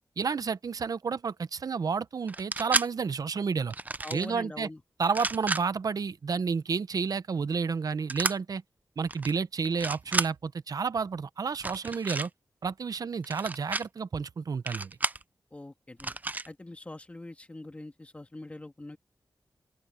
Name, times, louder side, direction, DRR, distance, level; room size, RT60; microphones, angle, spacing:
voice 1, 0.2-3.7 4.1-4.7 5.0-8.6 9.0-12.3 12.6-14.9, right 5 dB, 60° right, 0.7 m, -30 dB
sound 1, 2.3-2.9 3.7-4.3 5.0-5.6 8.1-8.3 9.1-9.3 9.6-10.3 11.5-12.3 13.2-13.8 14.7-15.2 16.0-16.5, right 3 dB, 25° right, 0.4 m, -31 dB
voice 2, 4.0-4.8 15.5-16.1 16.5-19.0, left 2 dB, 20° left, 1.9 m, -43 dB
open air
wide cardioid pair, 140°, 7 cm